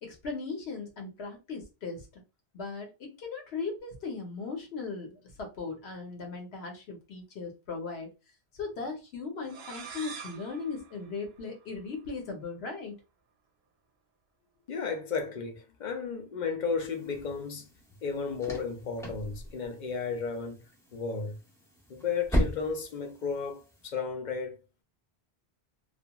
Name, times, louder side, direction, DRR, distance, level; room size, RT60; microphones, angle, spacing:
voice 1, 0.0-2.2 2.5-8.1 8.5-13.0, left 4 dB, 85° left, 1.0 m, -38 dB
sound 1, 9.4-12.0, right 6 dB, 80° right, 0.8 m, -46 dB
voice 2, 14.7-17.7 18.0-20.6 20.9-21.4 21.9-24.6, left 5 dB, 55° left, 0.6 m, -33 dB
sound 2, 16.8-23.9, equal, 5° left, 0.7 m, -37 dB
2.8 x 2.5 x 2.2 m
omnidirectional pair, 1.0 m